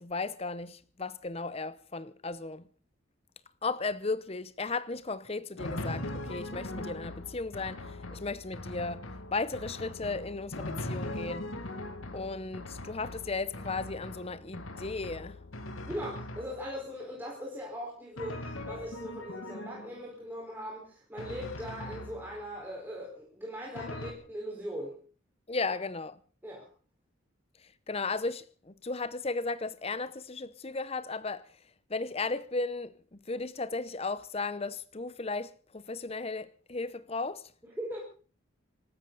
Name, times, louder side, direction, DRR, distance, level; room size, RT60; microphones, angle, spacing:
voice 1, 0.0-2.7 3.6-9.0 9.3-11.5 12.1-15.4 25.5-26.2 27.9-31.5 31.9-37.4, left 3 dB, 30° left, 0.7 m, -35 dB
Drum, 5.6-16.9 18.2-20.1 21.2-22.7 23.8-24.1, left 1 dB, 80° left, 2.2 m, -40 dB
voice 2, 15.9-25.0 25.7-25.8 26.4-26.7 37.6-38.0, equal, 10° right, 4.6 m, -40 dB
25.5 x 13.5 x 4.0 m
head